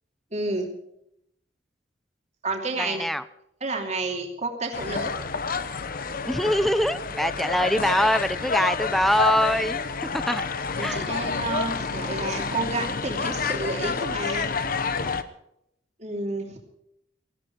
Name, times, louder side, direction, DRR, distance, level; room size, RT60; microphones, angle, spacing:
voice 1, 0.3-0.7 2.4-3.0 3.6-5.1 10.8-14.5 16.0-16.6, right 2 dB, 40° right, 2 dB, 2.9 m, -30 dB
voice 2, 2.8-3.2 6.3-9.8 10.1-10.4 10.8-11.1, equal, ahead, 14 dB, 0.6 m, -23 dB
sound 1, 4.7-15.2, left 4 dB, 55° left, 1.0 m, -29 dB
18.0 x 15.0 x 4.7 m, 0.77 s
head